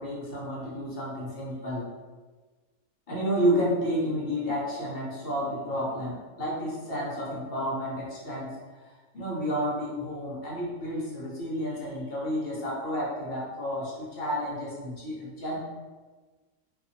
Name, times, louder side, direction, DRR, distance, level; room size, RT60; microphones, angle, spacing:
voice 1, 0.0-1.9 3.1-8.5 8.8-15.6, equal, 50° left, -6 dB, 0.7 m, -31 dB
2.6 x 2.4 x 2.6 m, 1.3 s
omnidirectional pair, 1.6 m